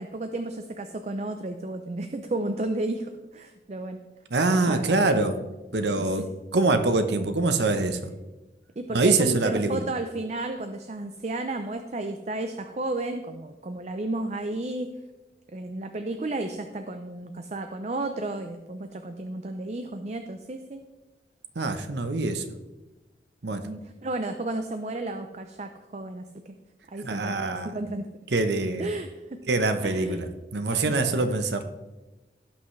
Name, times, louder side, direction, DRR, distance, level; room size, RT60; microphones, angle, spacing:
voice 1, 0.0-4.0 4.5-5.0 6.0-6.3 8.8-14.9 15.5-20.8 23.6-26.5 26.9-28.1 28.8-30.2 30.9-31.2, right 2 dB, 40° right, 7 dB, 0.5 m, -33 dB
voice 2, 4.3-5.4 5.7-6.3 6.5-8.1 8.9-9.8 21.6-22.4 23.4-23.7 27.0-27.7 28.3-28.9 29.5-31.6, right 3 dB, 75° right, 8 dB, 0.8 m, -24 dB
17.0 x 5.8 x 3.2 m, 1.1 s
head